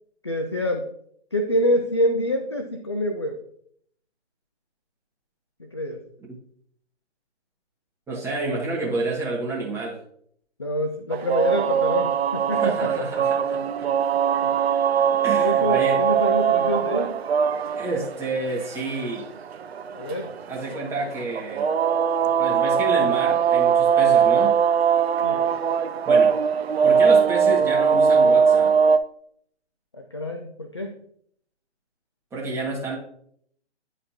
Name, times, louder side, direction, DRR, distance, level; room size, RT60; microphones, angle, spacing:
voice 1, 0.2-0.8 1.3-3.4 5.6-6.0 10.6-13.0 14.4-14.5 15.4-17.2 19.9-20.3 25.2-25.5 29.9-31.0, left 1 dB, 25° left, 5 dB, 0.3 m, -26 dB
voice 2, 8.1-10.0 12.5-13.6 15.2-16.0 17.7-19.3 20.5-21.7 22.2-24.5 26.1-26.3 26.8-28.7 32.3-33.0, right 2 dB, 5° right, -4 dB, 1.6 m, -29 dB
sound 1, 11.1-29.0, right 7 dB, 60° right, 0.5 m, -21 dB
10.5 x 4.2 x 2.8 m, 0.66 s
figure-of-eight pair, 135°, 35 cm